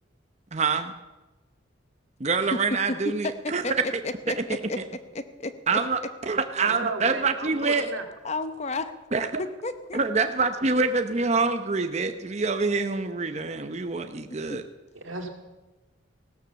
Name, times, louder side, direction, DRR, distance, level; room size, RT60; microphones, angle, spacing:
voice 1, 0.5-0.9 2.2-3.6 4.5-4.6 5.7-6.0 6.3-7.9 9.1-9.3 9.9-14.6, right 4 dB, 35° right, 8 dB, 0.8 m, -26 dB
voice 2, 2.5-5.8 7.7-7.9 8.2-8.9 9.4-10.0 14.2-14.6, left 2 dB, 35° left, 11 dB, 0.8 m, -33 dB
voice 3, 6.6-8.0 15.0-15.3, right 3 dB, 90° right, 4 dB, 2.2 m, -34 dB
16.5 x 12.5 x 7.0 m, 1.1 s
head